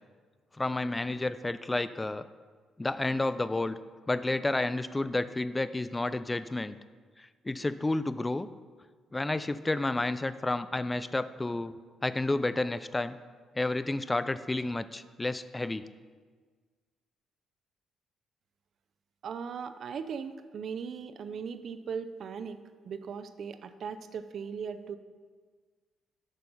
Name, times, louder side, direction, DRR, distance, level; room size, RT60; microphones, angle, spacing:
voice 1, 0.6-2.3 2.8-3.8 4.1-6.7 7.2-8.5 9.1-11.7 12.0-13.2 13.6-15.8, left 2 dB, 15° left, 14 dB, 0.3 m, -30 dB
voice 2, 19.2-25.0, right 6 dB, 60° right, 11 dB, 0.6 m, -38 dB
8.1 x 6.7 x 5.6 m, 1.5 s
cardioid pair, 90°, 0 cm